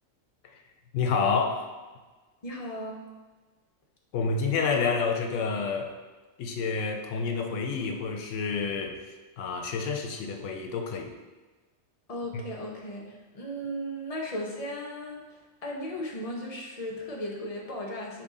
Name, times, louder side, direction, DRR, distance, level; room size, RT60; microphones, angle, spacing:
voice 1, 0.9-1.6 4.1-5.9 6.4-9.0 9.4-11.1 12.3-12.4, left 5 dB, 70° left, 3 dB, 0.9 m, -28 dB
voice 2, 2.4-3.0 12.1-18.2, equal, 40° left, -2 dB, 0.6 m, -36 dB
5.3 x 2.7 x 3.6 m, 1.3 s
omnidirectional pair, 1.4 m